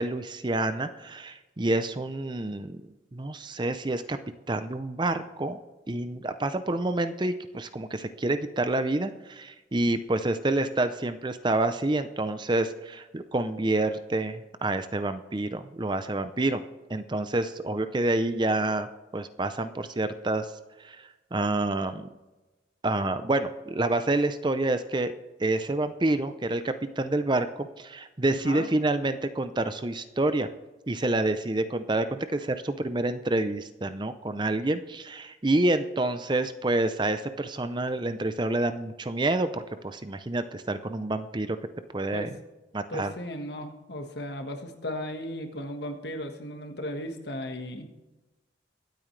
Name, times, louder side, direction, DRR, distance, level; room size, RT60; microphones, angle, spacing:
voice 1, 0.0-4.2 4.5-5.6 5.9-16.6 16.9-20.5 20.8-22.1 22.8-30.5 30.9-41.6 41.9-42.3 42.7-43.1, right 2 dB, 25° right, 10 dB, 0.5 m, -28 dB
voice 2, 42.9-47.9, left 1 dB, 60° left, 5 dB, 1.6 m, -36 dB
23.5 x 8.8 x 3.3 m, 1.1 s
head